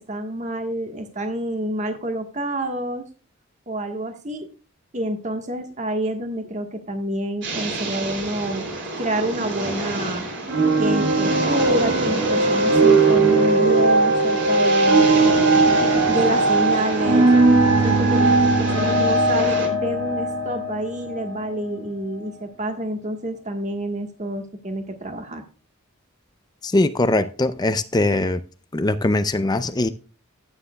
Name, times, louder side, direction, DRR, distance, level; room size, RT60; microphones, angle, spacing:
voice 1, 0.0-3.0 3.7-4.5 4.9-8.7 9.0-10.3 10.8-15.1 16.1-17.3 17.8-25.4, right 1 dB, 35° right, 1.4 m, -28 dB
sound 1, 7.4-19.7, right 2 dB, 55° right, 3.2 m, -29 dB
sound 2, 10.5-21.7, right 2 dB, 75° right, 2.1 m, -18 dB
voice 2, 26.6-28.4 28.7-29.9, left 2 dB, 20° left, 0.5 m, -21 dB
13.5 x 9.1 x 2.3 m
head